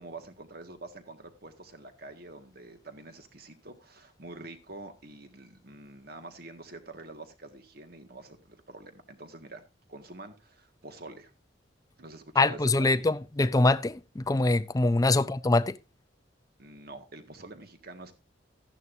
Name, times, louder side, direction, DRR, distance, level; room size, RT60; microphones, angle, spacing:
voice 1, 0.0-9.6 9.9-11.3 12.0-13.2 15.1-15.2 16.6-18.1, right 2 dB, 55° right, 1.8 m, -46 dB
voice 2, 12.4-15.8, left 2 dB, 20° left, 0.4 m, -24 dB
13.5 x 11.0 x 2.6 m
head